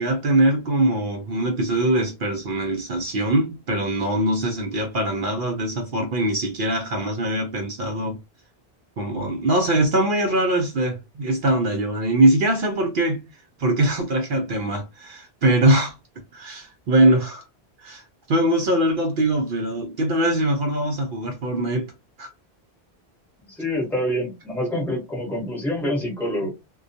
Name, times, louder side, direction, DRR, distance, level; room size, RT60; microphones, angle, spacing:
voice 1, 0.0-8.2 9.0-15.9 16.3-17.4 17.8-21.9 22.2-22.3 26.4-26.5, right 1 dB, 60° right, 0.7 m, -22 dB
voice 2, 23.4-26.5, left 1 dB, ahead, 0.9 m, -26 dB
2.2 x 2.2 x 2.6 m
omnidirectional pair, 1.1 m